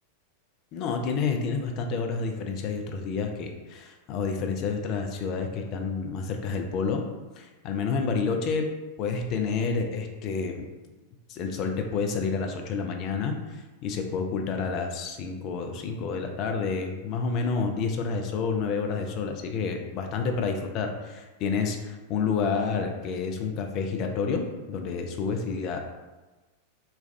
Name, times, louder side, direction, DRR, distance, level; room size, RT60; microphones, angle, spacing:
voice 1, 0.7-7.0 7.3-8.7 9.0-10.6 11.3-24.4 24.7-25.8, left 5 dB, 40° left, 4 dB, 0.4 m, -29 dB
3.2 x 2.2 x 2.4 m, 1.2 s
figure-of-eight pair, 90°, 0 cm